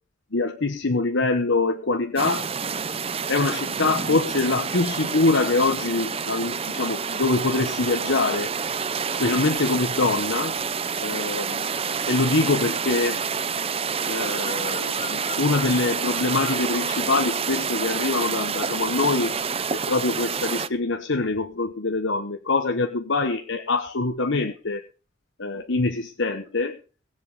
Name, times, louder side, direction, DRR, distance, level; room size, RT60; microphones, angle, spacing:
voice 1, 0.3-2.5 3.3-8.5 9.2-10.5 11.0-11.7 12.1-13.2 14.1-19.4 19.7-24.8 25.4-26.8, left 3 dB, 90° left, 7 dB, 1.2 m, -24 dB
sound 1, 2.2-20.7, right 6 dB, 30° right, 0.7 m, -28 dB
Bird vocalization bird call bird song, 14.1-17.6 17.9-18.3, left 6 dB, 35° left, 2.0 m, -42 dB
20.0 x 7.7 x 5.5 m, 0.37 s
head